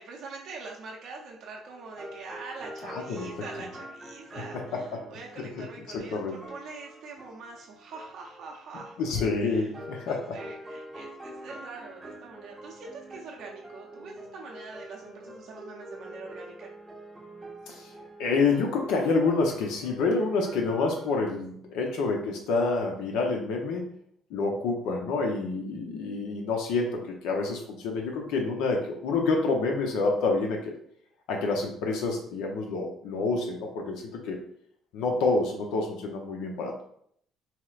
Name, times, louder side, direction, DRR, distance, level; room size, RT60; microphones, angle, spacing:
voice 1, 0.0-9.0 9.3-9.7 10.0-16.7, right 4 dB, 70° right, -1 dB, 0.6 m, -44 dB
sound 1, 1.6-21.2, right 1 dB, 25° right, 0.7 m, -45 dB
voice 2, 2.8-3.3 4.4-5.0 5.6-5.7 5.9-6.4 9.0-10.4 17.7-17.9 18.2-23.9 24.3-30.7 31.3-34.4 34.9-36.8, left 3 dB, 80° left, 1 dB, 0.6 m, -28 dB
4.2 x 2.1 x 2.4 m, 0.65 s
supercardioid pair, 75°, 0 cm